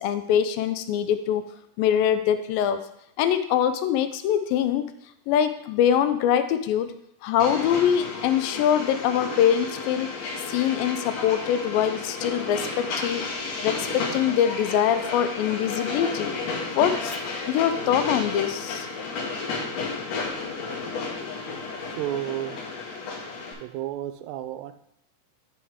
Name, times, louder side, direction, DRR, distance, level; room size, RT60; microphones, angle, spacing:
voice 1, 0.0-1.4 1.8-2.9 3.2-4.9 5.3-6.9 7.2-10.1 10.5-13.2 13.6-16.3 16.8-17.2 17.5-18.9, left 9 dB, 80° left, 9 dB, 2.3 m, -23 dB
Train, 7.4-23.5, left 4 dB, 65° left, 2.8 m, -32 dB
voice 2, 22.0-22.6 23.6-24.7, right 13 dB, 85° right, 10 dB, 2.3 m, -31 dB
10.5 x 4.6 x 3.5 m, 0.76 s
omnidirectional pair, 4.1 m